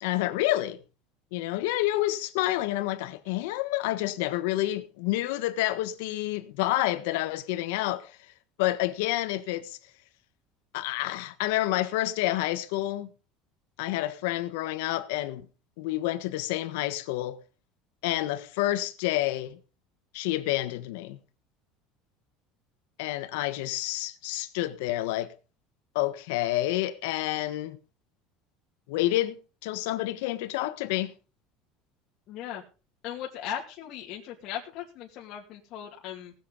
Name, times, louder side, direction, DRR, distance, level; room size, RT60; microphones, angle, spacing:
voice 1, 0.0-0.8 1.3-8.2 8.6-9.8 10.7-13.1 13.8-15.4 15.8-17.4 18.0-19.6 20.1-21.2 23.0-25.3 25.9-27.8 28.9-31.1, left 16 dB, 85° left, 1.4 m, -29 dB
voice 2, 32.3-32.6 33.0-36.3, left 10 dB, 50° left, 2.4 m, -38 dB
18.5 x 7.7 x 5.2 m
cardioid pair, 145°, 0 cm